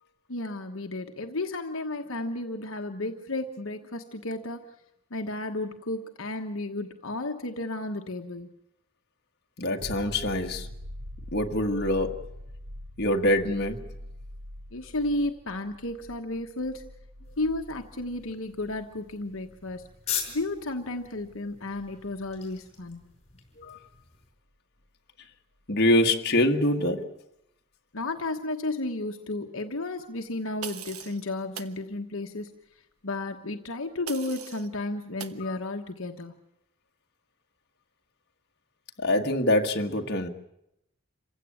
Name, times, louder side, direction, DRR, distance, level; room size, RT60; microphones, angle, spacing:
voice 1, 0.3-4.6 5.1-8.5 14.7-16.9 17.4-19.9 20.3-23.1 27.9-32.5 33.0-36.3, left 2 dB, 65° left, 1.2 m, -33 dB
voice 2, 9.6-10.7 11.3-12.2 13.0-13.9 23.6-23.8 25.7-27.1 35.4-35.6 39.0-40.3, left 1 dB, 50° left, 1.6 m, -25 dB
sound 1, 9.8-23.3 26.0-26.1, equal, 60° right, 2.0 m, -45 dB
sound 2, 17.2-24.3, left 8 dB, 30° left, 5.1 m, -41 dB
sound 3, 30.6-31.2 31.6-31.8 34.1-34.7 35.2-35.4, right 7 dB, 90° right, 1.2 m, -40 dB
27.0 x 16.0 x 8.7 m
head